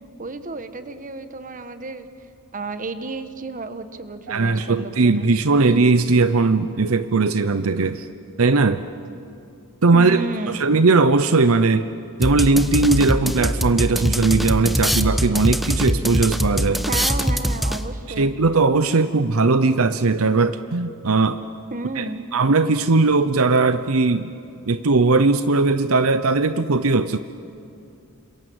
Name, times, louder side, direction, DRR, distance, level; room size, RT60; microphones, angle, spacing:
voice 1, 0.2-2.1 2.5-5.3 9.9-10.6 16.9-18.3 21.7-22.2, right 3 dB, 40° right, 10 dB, 1.4 m, -32 dB
voice 2, 4.3-8.1 8.4-8.8 9.8-10.2 10.5-11.9 12.2-16.9 18.2-21.4 22.0-22.1 22.3-24.3 24.7-27.2, right 3 dB, 70° right, 12 dB, 0.8 m, -18 dB
sound 1, 12.2-18.1, equal, ahead, 1.0 m, -23 dB
28.0 x 26.5 x 8.0 m, 2.6 s
head